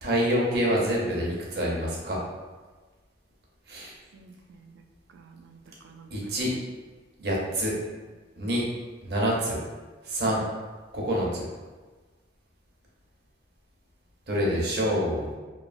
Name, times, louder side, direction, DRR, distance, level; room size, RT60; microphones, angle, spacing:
voice 1, 0.0-2.2 3.7-3.9 6.1-6.5 7.2-7.7 8.4-8.6 9.0-9.6 10.1-10.4 10.9-11.5 14.3-15.3, equal, 60° right, -4 dB, 0.7 m, -26 dB
voice 2, 4.1-4.8 5.1-6.7 7.2-7.3, right 4 dB, 80° right, 5 dB, 0.3 m, -51 dB
3.0 x 2.3 x 2.5 m, 1.3 s
head